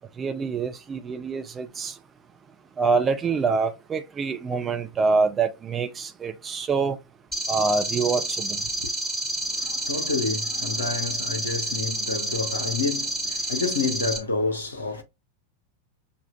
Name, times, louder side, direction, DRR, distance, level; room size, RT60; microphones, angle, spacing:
voice 1, 0.2-1.9 2.8-7.0 7.5-8.6, right 4 dB, 20° right, 0.6 m, -25 dB
sound 1, 7.3-14.2, right 1 dB, 5° left, 1.4 m, -29 dB
voice 2, 9.4-15.0, left 4 dB, 75° left, 1.0 m, -29 dB
6.8 x 2.4 x 2.5 m
figure-of-eight pair, 90°, 0 cm